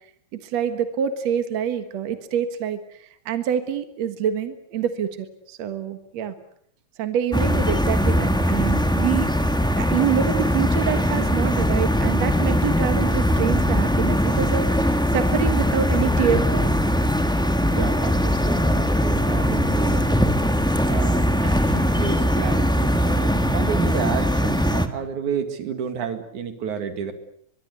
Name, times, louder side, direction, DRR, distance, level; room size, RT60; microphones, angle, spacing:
voice 1, 0.3-6.3 7.0-9.5 9.8-16.7, right 9 dB, 65° right, 9 dB, 2.7 m, -26 dB
sound 1, 7.3-24.9, equal, 5° left, 0.7 m, -21 dB
voice 2, 17.7-20.3 20.9-27.1, right 7 dB, 90° right, 8 dB, 3.7 m, -31 dB
23.5 x 23.0 x 8.2 m, 0.66 s
omnidirectional pair, 3.3 m